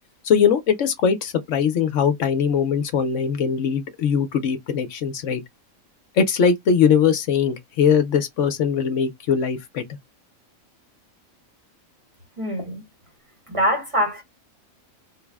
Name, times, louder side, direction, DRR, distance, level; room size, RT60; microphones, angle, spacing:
voice 1, 0.2-5.4 6.1-9.8, left 7 dB, 70° left, 1.0 m, -21 dB
voice 2, 12.4-12.8 13.5-14.2, equal, 30° right, 0.9 m, -23 dB
3.8 x 2.0 x 3.4 m
omnidirectional pair, 1.4 m